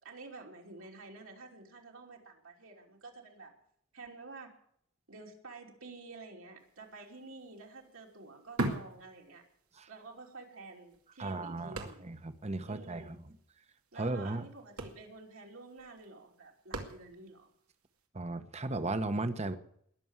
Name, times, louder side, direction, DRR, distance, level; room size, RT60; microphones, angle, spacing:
voice 1, 0.0-3.5 3.9-4.5 5.1-9.4 9.9-12.1 12.6-13.2 13.9-17.5, right 3 dB, 70° right, 0 dB, 3.1 m, -50 dB
sound 1, 6.8-6.9 7.2-9.8 10.2-10.3 10.9-12.4 12.7-12.8 13.0-13.3 14.1-14.3 14.6-17.4 18.0-18.1, right 2 dB, 90° right, 2.4 m, -39 dB
voice 2, 11.2-13.0 13.9-14.4 18.1-19.5, right 2 dB, 30° right, 11 dB, 1.0 m, -35 dB
20.5 x 7.0 x 8.9 m, 0.69 s
head